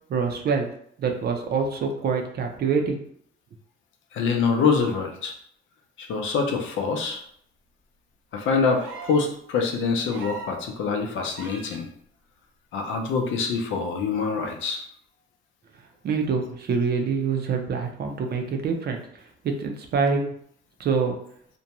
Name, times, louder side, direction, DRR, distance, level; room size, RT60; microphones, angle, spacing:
voice 1, 0.1-0.7 1.0-3.0 16.0-20.3 20.8-21.1, right 5 dB, 55° right, 4 dB, 0.5 m, -25 dB
voice 2, 4.1-5.3 6.0-7.2 8.3-11.9 12.7-14.8, left 5 dB, 75° left, 3 dB, 0.6 m, -25 dB
sound 1, 8.7-9.3 10.1-10.6 11.3-11.8 13.3-13.4, right 3 dB, 85° right, 0.8 m, -39 dB
2.5 x 2.2 x 2.9 m, 0.65 s
cardioid pair, 90°, 20 cm